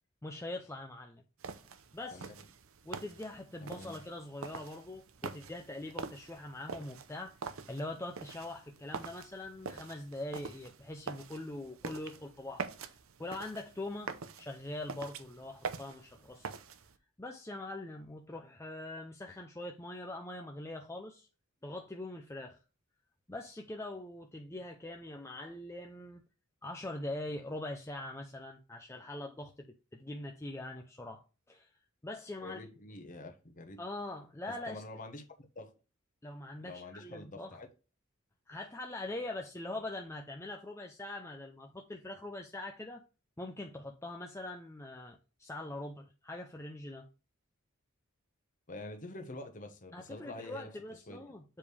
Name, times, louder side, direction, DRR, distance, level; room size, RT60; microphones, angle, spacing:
voice 1, 0.2-1.2 1.9-2.3 2.9-16.5 17.2-21.3 21.6-22.6 23.3-26.2 26.6-31.2 31.5-31.7 32.0-32.6 33.8-34.8 36.2-37.6 38.5-43.0 43.4-47.1 49.9-51.4, left 2 dB, 15° left, 0.6 m, -43 dB
sound 1, 1.4-17.0, right 5 dB, 85° right, 0.7 m, -45 dB
voice 2, 2.1-2.5 3.6-4.0 32.4-33.8 34.5-35.2 35.5-35.7 36.6-37.7 48.7-50.7 51.1-51.2, left 2 dB, 40° left, 1.2 m, -46 dB
7.4 x 4.9 x 3.3 m
head